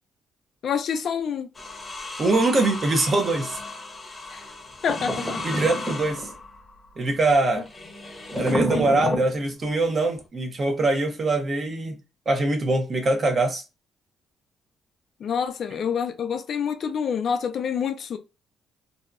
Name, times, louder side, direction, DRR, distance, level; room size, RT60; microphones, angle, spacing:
voice 1, 0.6-1.5 4.3-4.4 4.8-5.4 15.2-18.2, left 7 dB, 60° left, 0.4 m, -27 dB
sound 1, 1.5-8.7 9.6-10.2, left 3 dB, 25° left, 0.8 m, -37 dB
voice 2, 2.2-3.6 5.4-6.3 7.0-7.7 8.4-12.0 12.3-13.6, right 2 dB, 40° right, 0.8 m, -23 dB
sound 2, 4.9-6.3 8.3-9.3, equal, 5° right, 0.9 m, -28 dB
2.7 x 2.2 x 2.4 m
cardioid pair, 90°, 0 cm